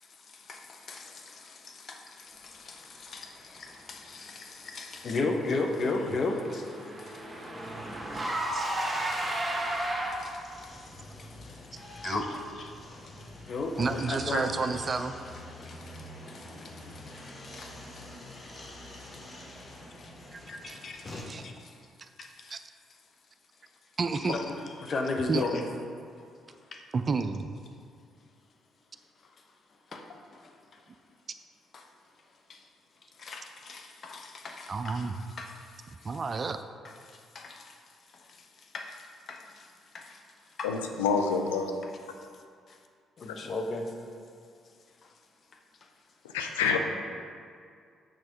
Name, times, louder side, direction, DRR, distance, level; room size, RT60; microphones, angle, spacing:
voice 1, 0.1-7.3 7.6-7.7 8.1-8.4 9.1-9.4 9.7-9.8 10.1-12.7 13.2-14.5 14.9-15.0 15.6-18.1 19.0-19.4 20.0-20.1 20.5-21.8 22.2-22.6 24.2-25.6 26.7-26.8 29.9-30.1 30.3-30.8 31.7-31.9 32.5-32.6 33.2-35.1 35.4-36.2 36.8-37.8 38.1-40.2 40.6-40.7 42.7-42.8 43.2-43.9 45.0-45.1 45.8-45.9, left 3 dB, 50° left, 3 dB, 1.0 m, -37 dB
Car / Engine, 5.5-10.5, right 1 dB, 15° right, 1.6 m, -33 dB
voice 2, 7.0-7.5 40.6-41.7 43.3-43.4 46.2-46.8, left 5 dB, 85° left, 4 dB, 0.5 m, -28 dB
sound 1, 8.6-21.2, left 1 dB, 35° left, 1.4 m, -46 dB
voice 3, 13.8-15.1 20.3-20.4 20.7-20.8 21.3-21.4 22.5-22.6 24.0-24.4 25.3-25.4 26.9-27.5 34.7-35.1 36.0-36.6, right 4 dB, 40° right, 9 dB, 0.4 m, -30 dB
6.5 x 6.3 x 4.5 m, 2.2 s
hypercardioid pair, 45°, 0 cm